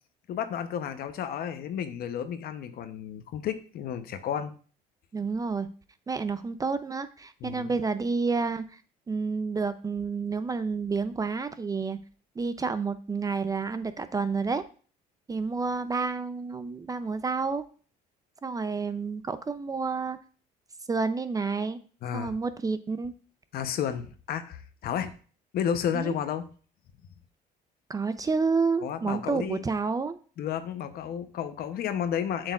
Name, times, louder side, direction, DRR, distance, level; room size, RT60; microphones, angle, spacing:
voice 1, 0.3-4.5 7.4-7.7 22.0-22.3 23.5-25.1 25.5-26.4 28.8-29.7 30.4-32.5, left 8 dB, 65° left, 9 dB, 0.8 m, -32 dB
voice 2, 5.1-5.7 6.1-8.7 9.1-12.0 12.4-14.6 15.3-17.6 18.4-20.2 20.9-21.8 22.1-23.1 25.9-26.2 27.9-30.2, right 4 dB, 20° right, 12 dB, 0.5 m, -29 dB
7.6 x 6.4 x 2.4 m, 0.40 s
cardioid pair, 110°, 17 cm